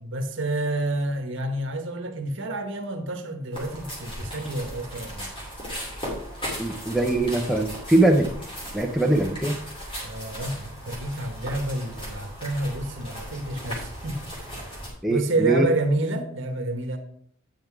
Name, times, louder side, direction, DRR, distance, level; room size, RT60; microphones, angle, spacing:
voice 1, 0.0-5.3 10.0-14.5 15.1-17.0, right 2 dB, 55° right, 1.1 m, -29 dB
sound 1, 3.5-14.9, equal, 25° left, 2.7 m, -37 dB
voice 2, 6.6-8.3 8.7-9.6 15.0-15.7, right 2 dB, ahead, 0.6 m, -22 dB
9.0 x 5.6 x 4.8 m
head